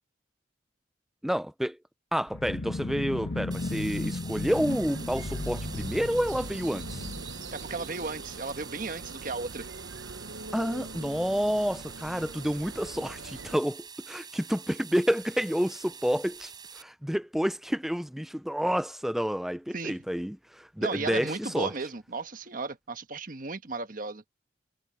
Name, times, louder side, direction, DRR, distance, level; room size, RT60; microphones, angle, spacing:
voice 1, 1.2-1.8 2.1-7.1 10.5-21.7, equal, ahead, 0.4 m, -29 dB
sound 1, 2.3-8.3, left 2 dB, 65° left, 1.1 m, -36 dB
sound 2, 3.5-16.8, right 6 dB, 20° right, 6.9 m, -46 dB
sound 3, 4.5-13.6, right 3 dB, 80° right, 0.9 m, -43 dB
voice 2, 7.5-9.6 19.7-19.9 20.8-24.2, right 3 dB, 45° right, 1.3 m, -35 dB
head